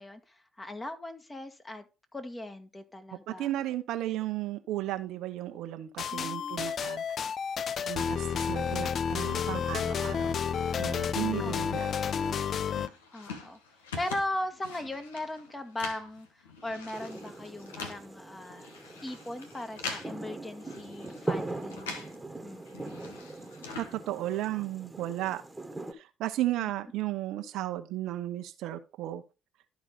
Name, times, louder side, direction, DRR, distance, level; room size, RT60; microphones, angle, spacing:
voice 1, 0.0-1.8 2.1-3.5 6.1-6.7 11.4-11.9 13.1-13.6 14.0-18.7 19.0-22.1 22.4-22.9 26.6-26.7, left 1 dB, 20° left, 1.7 m, -38 dB
voice 2, 3.1-7.0 7.8-10.4 10.8-12.5 23.8-25.4 26.0-29.2, right 14 dB, 70° right, 0.9 m, -34 dB
sound 1, 6.0-12.9, left 7 dB, 55° left, 0.4 m, -31 dB
sound 2, 12.2-22.2 22.5-24.6, left 4 dB, 90° left, 1.2 m, -44 dB
sound 3, 16.9-25.9, right 2 dB, 15° right, 1.5 m, -41 dB
12.5 x 4.6 x 4.0 m
hypercardioid pair, 50°, 0 cm